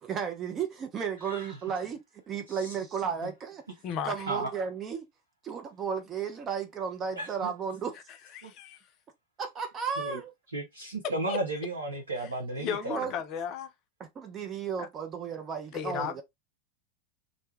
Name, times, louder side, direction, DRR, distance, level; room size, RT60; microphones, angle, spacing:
voice 1, 0.0-2.0 2.3-3.6 4.0-5.1 5.4-8.0 9.4-10.3 12.7-13.1 14.0-16.2, right 7 dB, 30° right, 0.5 m, -34 dB
voice 2, 1.2-1.6 2.5-2.8 3.2-3.3 4.3-4.5 7.1-7.5 8.4-8.5 10.0-10.2 10.5-13.1 15.9-16.1, right 2 dB, 80° right, 0.6 m, -35 dB
voice 3, 3.8-4.3 8.3-8.8 11.0-11.4 12.2-12.3 12.6-13.7 14.8-14.9 15.7-16.2, left 7 dB, 40° left, 0.5 m, -35 dB
2.6 x 2.2 x 3.0 m
figure-of-eight pair, 85°, 0 cm